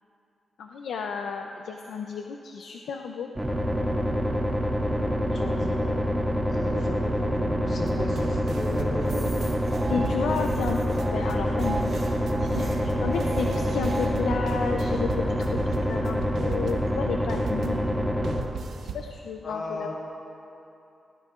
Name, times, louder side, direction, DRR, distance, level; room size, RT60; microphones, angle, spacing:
voice 1, 0.6-3.3 9.9-18.1 18.9-19.9, left 6 dB, 90° left, 3 dB, 0.5 m, -32 dB
sound 1, 3.3-18.4, equal, 5° right, 2.1 m, -26 dB
voice 2, 5.3-6.0 6.5-9.3 19.4-19.9, left 1 dB, 65° left, -3 dB, 3.5 m, -35 dB
sound 2, 7.7-17.8 18.2-19.1, right 5 dB, 85° right, 0.9 m, -37 dB
sound 3, 9.0-14.1, right 2 dB, 45° right, 2.8 m, -38 dB
21.0 x 17.0 x 2.5 m, 2.8 s
cardioid pair, 75°, 0 cm